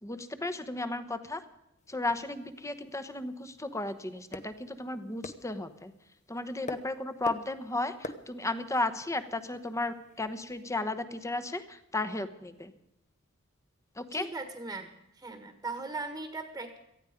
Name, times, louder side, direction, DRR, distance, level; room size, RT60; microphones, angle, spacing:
voice 1, 0.0-1.4 1.9-5.9 6.3-12.7 14.0-14.3, left 2 dB, 15° left, 12 dB, 1.1 m, -34 dB
sound 1, 1.8-10.6, left 2 dB, 35° left, 1.0 m, -48 dB
voice 2, 14.1-14.9 15.1-16.8, right 3 dB, 15° right, 7 dB, 1.4 m, -38 dB
18.5 x 14.0 x 5.2 m, 0.85 s
head